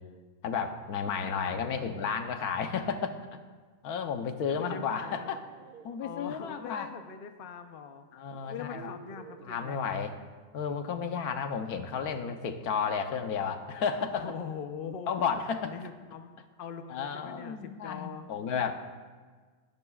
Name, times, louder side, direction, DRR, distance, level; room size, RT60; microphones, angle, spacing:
voice 1, 0.4-3.2 3.8-5.4 5.8-6.9 8.1-8.9 9.4-10.1 10.5-14.3 15.1-15.8 16.9-18.7, left 6 dB, 85° left, 7 dB, 1.3 m, -32 dB
voice 2, 1.2-1.8 4.5-5.3 6.0-8.0 8.5-10.0 14.1-15.1 15.6-18.3, left 7 dB, 50° left, 7 dB, 0.8 m, -42 dB
sound 1, 4.8-6.0 7.4-7.5 8.2-9.6, right 7 dB, 80° right, 1.2 m, -51 dB
22.0 x 11.0 x 2.4 m, 1.5 s
omnidirectional pair, 1.5 m